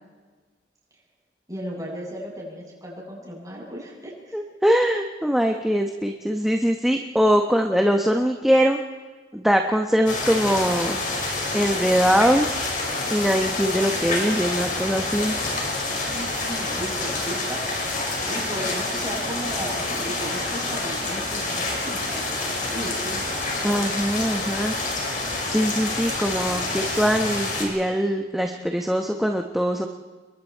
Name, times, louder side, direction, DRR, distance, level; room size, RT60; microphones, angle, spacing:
voice 1, 1.5-4.4 16.1-17.6 18.2-23.2, right 1 dB, 20° right, -3 dB, 7.5 m, -35 dB
voice 2, 4.3-8.8 9.3-11.0 11.5-12.6 13.1-15.4 23.6-24.8 25.4-29.9, equal, ahead, 3 dB, 1.0 m, -22 dB
sound 1, 10.1-27.6, left 2 dB, 50° left, 5.6 m, -27 dB
29.5 x 22.0 x 4.6 m, 1.4 s
head